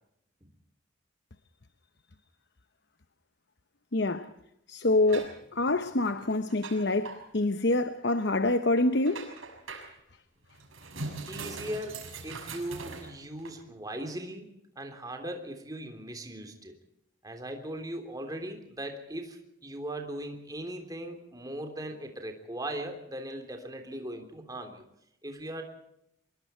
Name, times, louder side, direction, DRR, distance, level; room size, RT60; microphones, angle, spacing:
voice 1, 3.9-4.3 4.7-9.3, left 2 dB, 55° left, 0.9 m, -26 dB
sound 1, 5.1-7.3 8.1-8.2 8.5-9.9 10.4-13.5, right 3 dB, 85° right, 6.7 m, -41 dB
voice 2, 11.3-14.5 14.7-16.7 17.2-24.8 25.2-25.6, right 1 dB, 20° right, 3.3 m, -39 dB
26.0 x 23.0 x 4.5 m
head